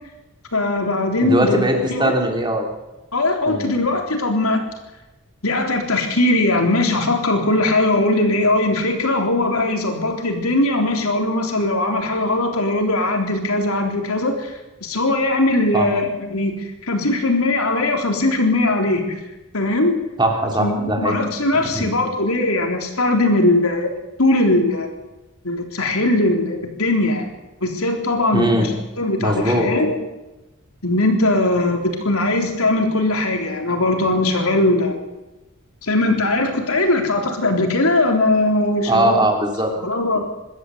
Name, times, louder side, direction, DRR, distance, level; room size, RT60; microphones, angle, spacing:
voice 1, 0.5-2.2 3.1-4.6 5.4-16.5 16.8-19.2 19.5-20.0 20.6-23.9 24.2-24.9 25.4-27.3 27.6-28.6 29.0-30.0 30.8-35.0 35.8-39.2 39.8-40.2, left 2 dB, 80° left, 3 dB, 3.8 m, -20 dB
voice 2, 1.2-2.7 3.5-3.7 15.7-15.9 20.2-21.2 21.5-21.9 28.3-28.7 29.2-29.7 38.9-39.7 40.1-40.2, right 1 dB, 20° right, 2 dB, 3.1 m, -20 dB
25.0 x 13.0 x 8.1 m, 1.0 s
head